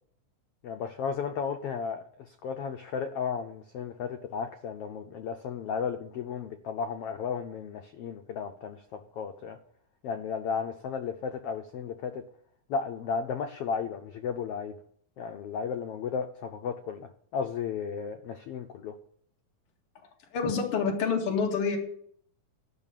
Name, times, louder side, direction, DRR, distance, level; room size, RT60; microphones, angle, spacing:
voice 1, 0.6-9.6 10.0-12.2 12.7-14.8 15.2-19.0, left 6 dB, 85° left, 1.3 m, -34 dB
voice 2, 20.3-21.8, left 5 dB, 50° left, 2.9 m, -27 dB
12.5 x 6.1 x 9.1 m
omnidirectional pair, 3.6 m